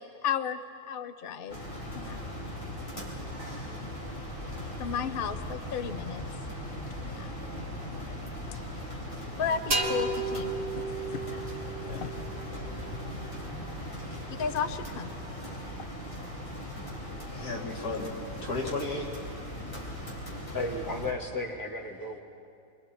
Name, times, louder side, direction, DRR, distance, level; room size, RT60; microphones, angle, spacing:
voice 1, 0.2-0.6 0.9-1.6 1.9-2.2 4.8-6.2 7.0-7.3 9.4-10.8 11.1-11.2 11.9-12.1 14.4-15.1, left 7 dB, 55° left, 10 dB, 0.6 m, -33 dB
sound 1, 1.5-21.1, left 1 dB, 35° left, 4.0 m, -39 dB
sound 2, 9.7-13.3, right 3 dB, 45° right, 1.8 m, -33 dB
voice 2, 12.5-13.0 17.3-18.1 18.4-19.1, left 2 dB, 85° left, -2 dB, 3.1 m, -35 dB
voice 3, 20.0-22.2, left 2 dB, 15° left, -1 dB, 2.1 m, -35 dB
28.0 x 23.0 x 4.4 m, 2.4 s
omnidirectional pair, 1.6 m